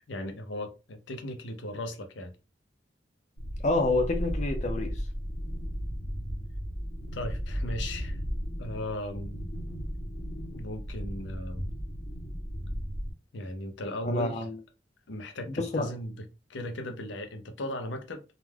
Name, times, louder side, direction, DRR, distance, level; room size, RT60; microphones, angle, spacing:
voice 1, 0.1-2.3 7.1-8.2 8.6-9.5 10.0-10.2 10.5-11.7 13.3-14.4 15.1-18.2, left 1 dB, 90° left, 0.6 m, -37 dB
sound 1, 3.4-13.1, equal, 65° left, 0.9 m, -35 dB
voice 2, 3.6-5.0 14.0-14.6 15.5-15.9, left 2 dB, 40° left, 0.5 m, -28 dB
2.3 x 2.2 x 3.2 m
head